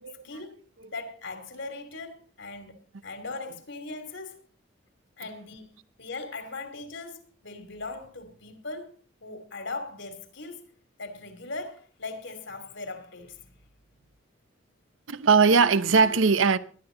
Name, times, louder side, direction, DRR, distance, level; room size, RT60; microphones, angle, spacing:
voice 1, 0.2-0.6 0.9-4.4 5.2-5.7 6.0-9.0 9.2-10.6 11.0-13.6, left 3 dB, 65° left, 2.8 m, -39 dB
voice 2, 15.1-16.6, right 5 dB, 80° right, 0.8 m, -20 dB
20.0 x 12.0 x 3.9 m
head